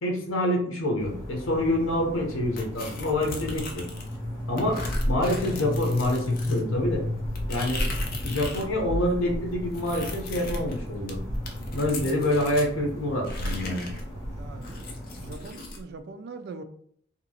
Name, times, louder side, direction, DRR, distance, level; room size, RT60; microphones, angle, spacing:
voice 1, 0.0-3.8 4.5-7.0 7.5-7.9 8.2-11.2 11.7-13.9, left 1 dB, 75° left, 0 dB, 0.8 m, -27 dB
sound 1, 1.0-15.4, equal, 20° left, 1.2 m, -34 dB
sound 2, 2.6-4.2 4.6-8.7 9.0-12.7 13.2-15.8, left 2 dB, 45° left, 0.5 m, -37 dB
voice 2, 7.7-8.2 12.0-12.1 14.4-14.8 15.2-16.6, right 4 dB, 50° right, 8 dB, 0.3 m, -42 dB
2.9 x 2.6 x 2.8 m, 0.63 s
head